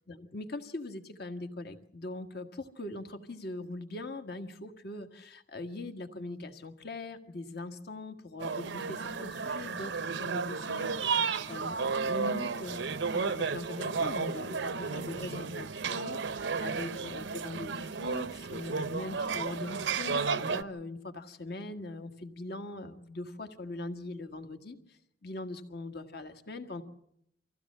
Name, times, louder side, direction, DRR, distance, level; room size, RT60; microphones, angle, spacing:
voice 1, 0.1-9.9 10.2-26.8, left 2 dB, 60° left, 6 dB, 1.7 m, -41 dB
sound 1, 8.4-20.6, right 5 dB, 75° right, 0.7 m, -33 dB
25.0 x 15.5 x 7.4 m, 0.76 s
head